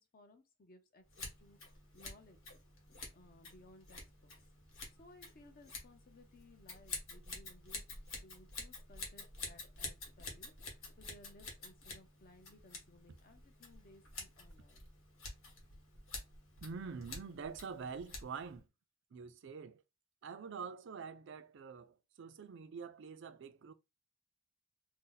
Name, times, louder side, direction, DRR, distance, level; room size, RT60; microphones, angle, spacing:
voice 1, 0.0-1.6 1.9-2.5 3.1-4.3 5.0-7.8 8.2-14.9, left 2 dB, 45° left, 0.6 m, -61 dB
Scissors, 1.1-18.6, left 3 dB, 85° left, 1.2 m, -49 dB
voice 2, 16.6-18.7 19.1-19.8 20.2-23.7, right 5 dB, 60° right, 0.4 m, -46 dB
2.7 x 2.1 x 3.8 m
head